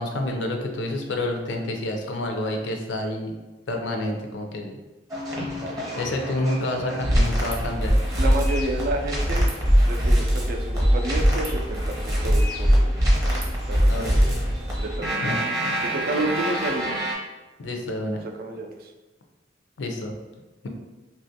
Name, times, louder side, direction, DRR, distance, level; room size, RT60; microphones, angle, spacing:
voice 1, 0.0-3.3 3.7-4.8 6.0-8.0 13.9-14.5 15.2-15.4 17.6-18.2 19.8-20.1, left 1 dB, 85° left, 3 dB, 0.5 m, -28 dB
sound 1, 5.1-17.1, equal, 20° right, 0.7 m, -23 dB
voice 2, 8.2-9.5 9.9-12.9 13.7-14.3 14.8-15.2 15.9-16.9 17.9-18.9, right 2 dB, 55° right, 4 dB, 0.4 m, -30 dB
2.9 x 2.4 x 2.7 m, 1.2 s
head